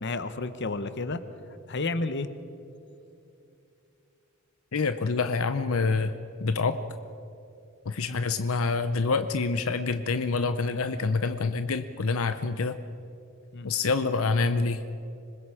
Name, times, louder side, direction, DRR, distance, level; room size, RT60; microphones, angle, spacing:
voice 1, 0.0-1.2 1.7-2.3 8.1-8.2 13.5-13.7, left 3 dB, 55° left, 11 dB, 1.0 m, -31 dB
voice 2, 4.7-6.1 6.4-6.8 7.9-12.8 13.6-14.8, left 4 dB, 80° left, 10 dB, 0.7 m, -26 dB
25.5 x 21.0 x 4.9 m, 2.7 s
head